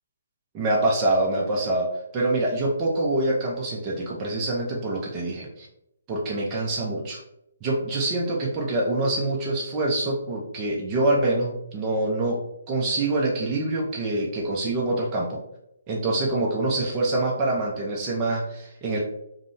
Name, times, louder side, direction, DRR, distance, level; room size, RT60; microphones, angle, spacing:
voice 1, 0.5-1.9 2.1-5.7 6.1-7.2 7.6-12.4 12.7-15.4 15.9-19.0, right 2 dB, 20° right, -3 dB, 0.5 m, -25 dB
3.5 x 2.0 x 2.6 m, 0.81 s
hypercardioid pair, 160°, 0 cm